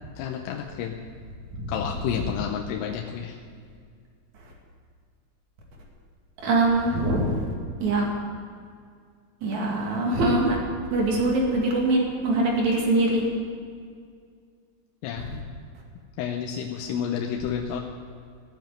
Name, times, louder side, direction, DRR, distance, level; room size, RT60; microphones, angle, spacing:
voice 1, 0.2-1.0 1.7-3.4 15.0-15.5 16.2-17.8, left 8 dB, 85° left, 2 dB, 3.4 m, -30 dB
voice 2, 6.4-7.5 7.8-8.1 9.4-10.6 10.9-13.3, right 2 dB, 50° right, -1 dB, 2.6 m, -23 dB
17.0 x 7.5 x 9.1 m, 2.1 s
omnidirectional pair, 5.9 m